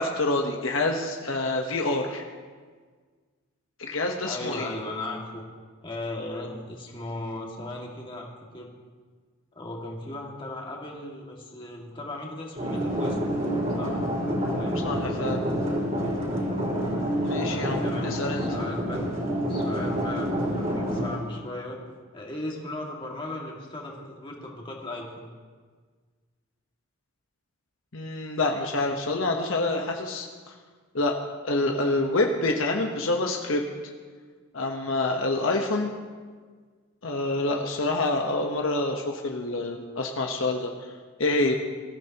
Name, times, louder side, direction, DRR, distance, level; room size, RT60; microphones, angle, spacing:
voice 1, 0.0-2.2 3.8-4.7 14.8-15.4 17.2-18.4 27.9-30.3 30.9-31.2 31.4-33.6 34.5-35.9 37.0-40.7 41.2-41.6, left 2 dB, 65° left, 2 dB, 1.1 m, -27 dB
voice 2, 4.3-5.5 5.8-8.7 9.5-13.2 13.8-13.9 14.5-15.2 17.8-19.0 19.5-21.8 22.1-25.3, left 1 dB, 25° left, -1 dB, 2.1 m, -37 dB
sound 1, 12.6-21.2, equal, 35° right, 4.3 m, -28 dB
23.5 x 14.5 x 3.0 m, 1.5 s
head